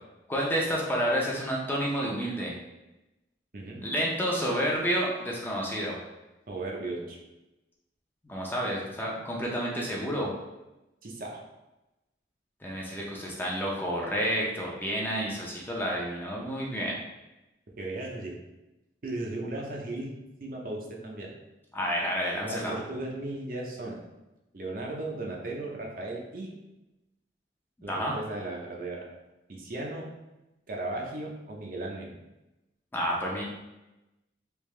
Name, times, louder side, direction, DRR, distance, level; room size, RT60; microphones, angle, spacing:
voice 1, 0.3-2.5 3.8-6.0 8.2-10.3 12.6-17.0 21.7-22.8 27.9-28.1 32.9-33.4, equal, 10° left, -3 dB, 0.5 m, -30 dB
voice 2, 6.5-7.2 11.0-11.4 17.8-18.3 19.0-20.1 20.4-21.3 22.4-24.0 24.5-26.5 27.8-29.1 29.5-30.1 30.7-32.1, right 2 dB, 50° right, -1 dB, 0.6 m, -36 dB
3.4 x 2.8 x 3.2 m, 0.99 s
head